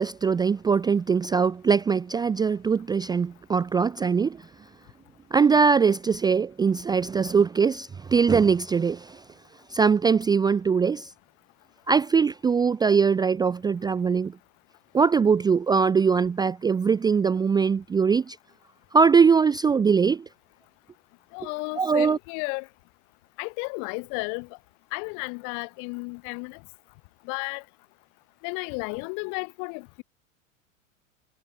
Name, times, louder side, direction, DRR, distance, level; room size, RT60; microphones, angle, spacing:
voice 1, 0.0-4.4 5.3-9.2 9.7-11.1 11.9-14.3 14.9-18.4 18.9-20.2 21.8-22.2, right 5 dB, 10° right, 0.5 m, -21 dB
voice 2, 21.3-22.7 23.4-24.5 24.9-26.6 27.2-27.6 28.4-30.0, left 40 dB or more, 50° left, 4.2 m, -33 dB
figure-of-eight pair, 90°, 39 cm